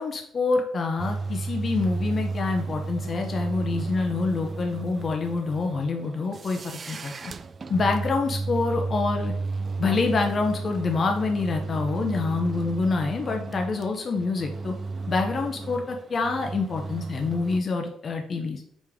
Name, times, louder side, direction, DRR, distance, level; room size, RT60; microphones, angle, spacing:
voice 1, 0.0-7.3 7.7-9.3 9.8-14.7 15.1-18.6, left 4 dB, 45° left, 3 dB, 0.8 m, -26 dB
sound 1, 1.0-17.6, right 3 dB, 40° right, 0.4 m, -33 dB
5.4 x 5.0 x 3.5 m, 0.70 s
cardioid pair, 90°, 0 cm